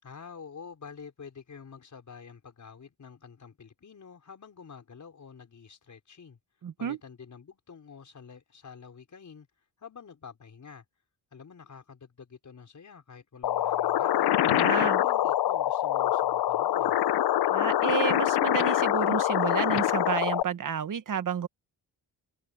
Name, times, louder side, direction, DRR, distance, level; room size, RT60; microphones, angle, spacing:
voice 1, 0.0-6.4 6.8-9.5 9.8-10.8 11.3-14.3 15.0-17.0, left 6 dB, 45° left, 5.3 m, -48 dB
voice 2, 6.6-7.0 14.4-15.0 17.5-21.5, right 8 dB, 50° right, 1.3 m, -31 dB
sound 1, 13.4-20.4, left 12 dB, 70° left, 0.7 m, -25 dB
cardioid pair, 115°, 41 cm